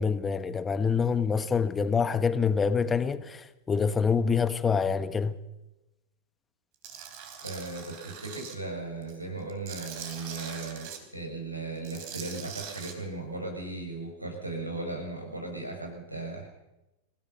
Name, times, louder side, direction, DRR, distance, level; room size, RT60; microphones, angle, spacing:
voice 1, 0.0-5.3, left 5 dB, 15° left, 1.4 m, -26 dB
Tools, 6.8-8.5 9.0-11.0 11.8-12.9, right 8 dB, 45° right, 4.0 m, -42 dB
voice 2, 7.4-16.5, right 3 dB, 85° right, 6.9 m, -37 dB
28.5 x 17.0 x 5.8 m
figure-of-eight pair, 90°, 0 cm